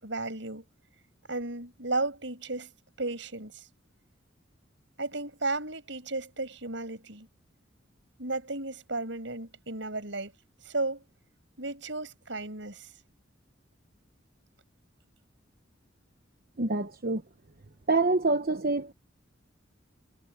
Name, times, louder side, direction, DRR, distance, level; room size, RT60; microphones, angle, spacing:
voice 1, 0.0-0.6 1.3-2.7 3.0-3.6 5.0-7.3 8.2-10.3 10.6-11.0 11.6-12.9, right 2 dB, 70° right, 6.1 m, -34 dB
voice 2, 16.6-17.2 17.9-18.9, right 3 dB, 50° right, 1.0 m, -26 dB
head